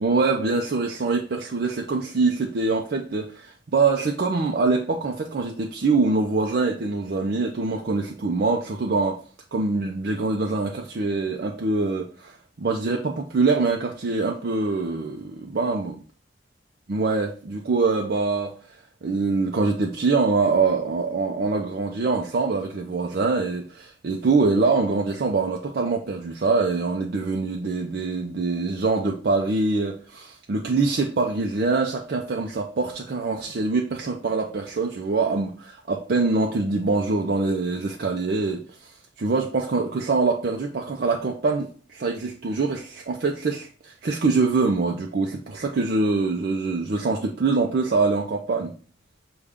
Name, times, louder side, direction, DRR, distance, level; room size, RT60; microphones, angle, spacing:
voice 1, 0.0-9.2 9.5-16.0 16.9-18.5 19.0-48.7, right 3 dB, 55° right, 0.5 m, -24 dB
6.4 x 2.3 x 3.5 m
head